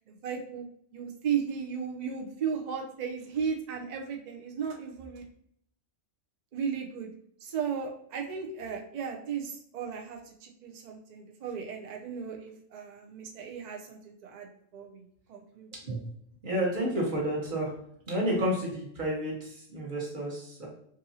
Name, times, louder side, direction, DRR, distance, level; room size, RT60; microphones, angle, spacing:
voice 1, 0.1-0.6 0.9-5.2 6.5-7.1 7.4-15.7, right 7 dB, 70° right, 1 dB, 0.4 m, -35 dB
voice 2, 16.4-17.7 18.1-20.7, right 1 dB, 40° right, -3 dB, 1.1 m, -30 dB
4.0 x 2.6 x 2.7 m, 0.66 s
omnidirectional pair, 1.3 m